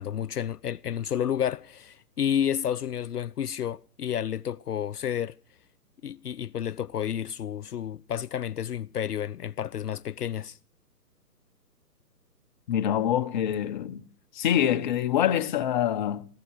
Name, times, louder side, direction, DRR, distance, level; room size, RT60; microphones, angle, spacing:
voice 1, 0.0-5.3 6.0-10.6, left 9 dB, 70° left, 0.7 m, -30 dB
voice 2, 12.7-14.0 14.3-16.3, left 10 dB, 30° left, 1.0 m, -25 dB
15.5 x 14.0 x 6.4 m
figure-of-eight pair, 135°, 48 cm